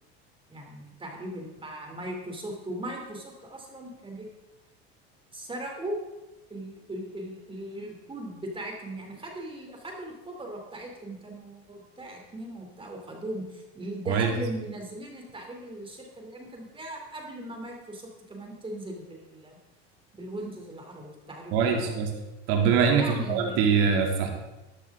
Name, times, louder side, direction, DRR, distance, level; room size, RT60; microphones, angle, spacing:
voice 1, 0.5-4.3 5.3-6.0 6.5-19.6 20.1-21.9 22.9-23.6, right 1 dB, 15° right, 1 dB, 2.8 m, -39 dB
voice 2, 21.5-22.1 22.5-24.3, right 6 dB, 70° right, 2 dB, 2.7 m, -23 dB
13.0 x 11.5 x 3.6 m, 1.0 s
supercardioid pair, 115°, 32 cm